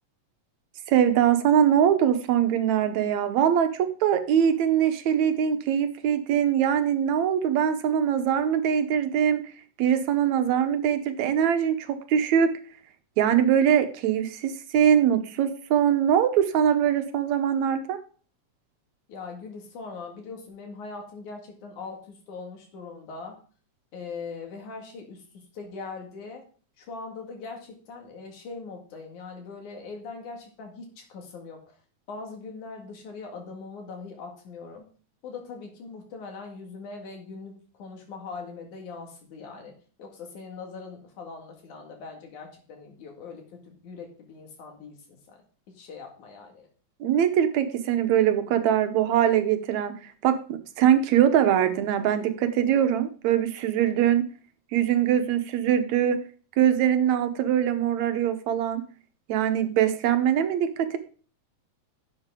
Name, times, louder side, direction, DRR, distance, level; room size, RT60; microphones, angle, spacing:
voice 1, 0.9-9.4 9.8-12.5 13.2-18.0 47.0-50.4 50.8-54.2 54.7-56.2 56.6-58.8 59.3-61.0, right 9 dB, 75° right, 8 dB, 2.2 m, -22 dB
voice 2, 19.1-23.4 23.9-26.4 26.8-31.8 32.1-34.9 35.2-39.7 40.0-45.4 45.7-46.7, left 4 dB, 90° left, 2 dB, 3.5 m, -41 dB
11.0 x 7.4 x 3.7 m, 0.41 s
omnidirectional pair, 3.4 m